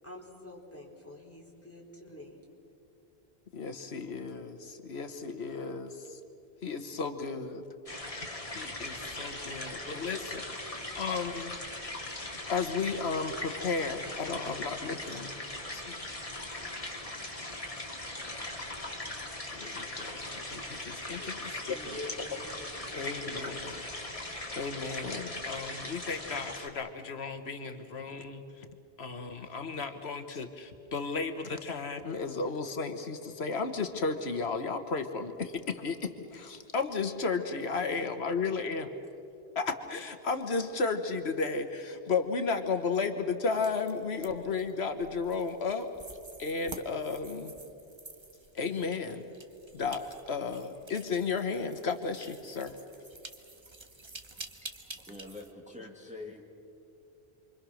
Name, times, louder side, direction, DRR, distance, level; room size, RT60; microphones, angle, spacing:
voice 1, 0.0-2.4 20.5-20.7 21.1-21.4 21.6-22.9, left 2 dB, 15° left, -3 dB, 4.3 m, -47 dB
voice 2, 3.5-6.2 6.6-7.6 8.5-11.6 12.5-15.3 15.7-15.9 19.5-22.1 22.9-23.9 24.5-28.7 29.0-36.0 36.7-38.9 39.5-45.9 46.4-47.5 48.5-49.3 49.7-52.8, left 4 dB, 80° left, 7 dB, 1.5 m, -34 dB
sound 1, 7.9-26.7, left 1 dB, 35° left, 2.3 m, -40 dB
sound 2, 43.5-55.5, right 2 dB, 25° right, 1.2 m, -49 dB
voice 3, 54.6-56.4, left 2 dB, 5° right, 0 dB, 2.0 m, -46 dB
28.5 x 24.0 x 6.3 m, 2.7 s
omnidirectional pair, 1.1 m